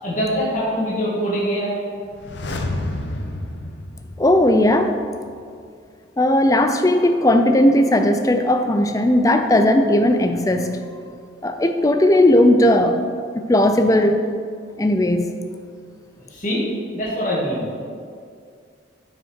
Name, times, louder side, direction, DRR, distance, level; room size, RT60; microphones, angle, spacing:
voice 1, 0.0-1.8 16.2-16.6 16.9-17.7, equal, 40° left, -7 dB, 1.9 m, -23 dB
sound 1, 2.1-5.0 5.3-5.4, left 1 dB, 70° left, 0.8 m, -30 dB
voice 2, 4.2-4.9 6.2-10.8 11.4-13.0 13.3-14.2 14.8-15.3, left 1 dB, 20° left, 7 dB, 0.4 m, -16 dB
9.3 x 5.7 x 4.5 m, 2.2 s
head